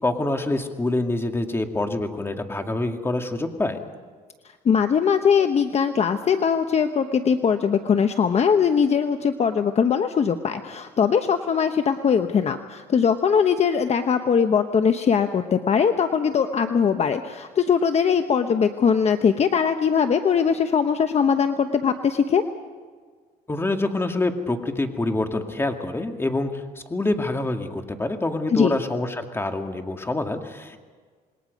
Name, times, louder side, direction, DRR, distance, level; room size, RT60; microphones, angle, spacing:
voice 1, 0.0-3.8 23.5-26.6 26.9-30.8, left 2 dB, 15° left, 5 dB, 2.1 m, -26 dB
voice 2, 4.6-22.4 28.5-28.8, left 6 dB, 40° left, 8 dB, 1.1 m, -21 dB
27.0 x 21.5 x 5.3 m, 1.5 s
cardioid pair, 110°, 17 cm